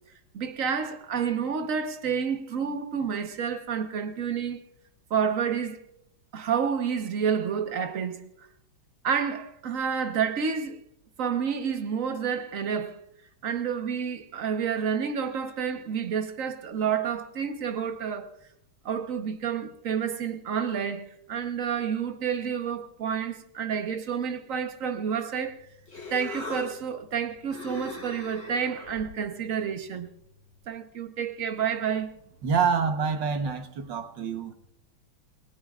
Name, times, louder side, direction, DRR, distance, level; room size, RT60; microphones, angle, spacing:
voice 1, 0.3-4.6 5.1-5.8 6.3-8.5 9.0-10.8 11.2-13.0 13.4-18.3 18.8-25.6 26.1-30.1 30.7-32.1, right 7 dB, 50° right, 1.2 m, -29 dB
Human voice, 25.5-30.6, left 2 dB, 40° left, 6.9 m, -42 dB
voice 2, 32.4-34.5, right 6 dB, 65° right, 1.8 m, -27 dB
28.5 x 19.0 x 2.4 m
omnidirectional pair, 2.2 m